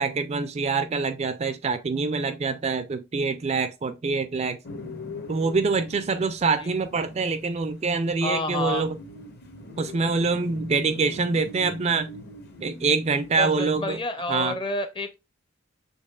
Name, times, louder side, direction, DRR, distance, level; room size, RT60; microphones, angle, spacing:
voice 1, 0.0-4.6 5.3-9.0 9.8-12.1 12.6-14.0 14.3-14.5, right 4 dB, 30° right, 0.3 m, -25 dB
sound 1, 4.6-14.0, left 2 dB, 50° left, 1.0 m, -42 dB
voice 2, 8.2-8.9 13.4-15.1, left 2 dB, 25° left, 0.6 m, -29 dB
6.4 x 3.3 x 2.3 m
head